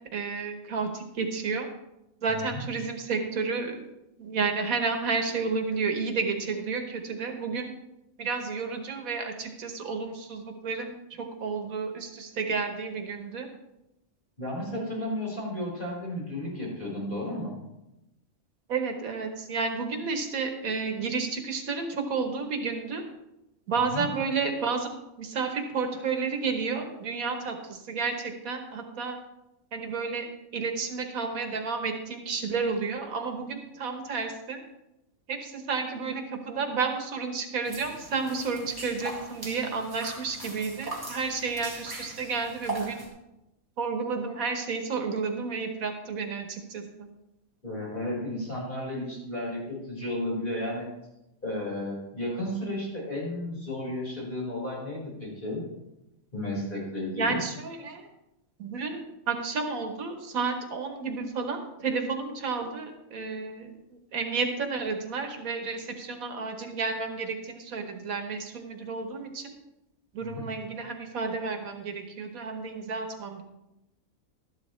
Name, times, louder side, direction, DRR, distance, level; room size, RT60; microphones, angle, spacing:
voice 1, 0.1-1.7 2.2-3.8 4.2-7.7 8.2-13.5 18.7-23.0 23.7-24.9 25.2-29.2 29.7-30.2 30.5-34.6 35.3-43.1 43.8-47.1 57.2-58.1 58.6-69.5 70.1-73.4, right 4 dB, 80° right, 5 dB, 1.6 m, -31 dB
voice 2, 14.4-17.5 23.9-24.0 47.6-50.9 51.4-55.6 56.3-57.4 70.2-70.4, left 1 dB, 35° left, -5 dB, 5.1 m, -33 dB
sound 1, 37.6-43.1, right 1 dB, 15° right, 2.1 m, -40 dB
12.5 x 11.0 x 3.2 m, 0.91 s
omnidirectional pair, 1.5 m